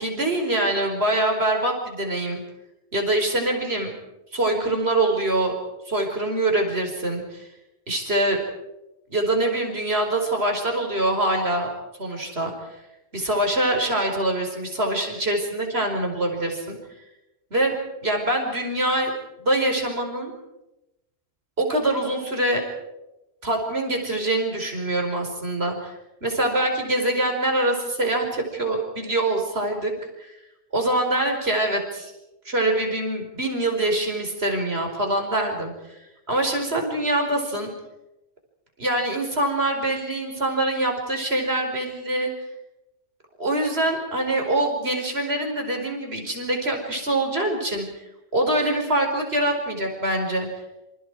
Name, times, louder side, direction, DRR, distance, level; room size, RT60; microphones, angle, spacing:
voice 1, 0.0-2.4 2.9-3.9 4.3-5.5 5.9-7.5 7.9-8.4 9.1-11.7 12.0-12.5 13.1-16.8 17.5-17.7 18.0-19.1 19.4-20.3 21.6-22.6 23.4-25.9 26.2-29.9 30.2-30.3 30.7-32.1 32.4-35.7 36.3-37.7 38.8-42.3 43.4-47.9 48.3-50.5, right 1 dB, 65° right, 3 dB, 5.0 m, -24 dB
28.0 x 27.5 x 4.8 m, 0.95 s
omnidirectional pair, 1.2 m